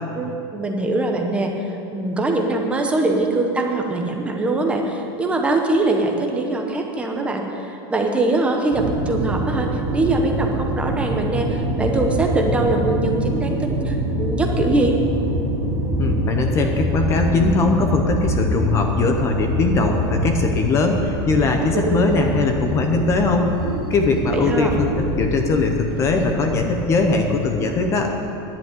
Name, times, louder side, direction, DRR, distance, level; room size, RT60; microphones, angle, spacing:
voice 1, 0.2-14.9 24.3-24.8, right 2 dB, 10° right, 2 dB, 0.8 m, -22 dB
sound 1, 8.7-27.9, right 1 dB, 35° right, 2.2 m, -25 dB
voice 2, 16.0-23.5 23.9-28.1, left 3 dB, 20° left, 4 dB, 0.7 m, -20 dB
10.5 x 7.8 x 9.5 m, 2.8 s
supercardioid pair, 175°, 13 cm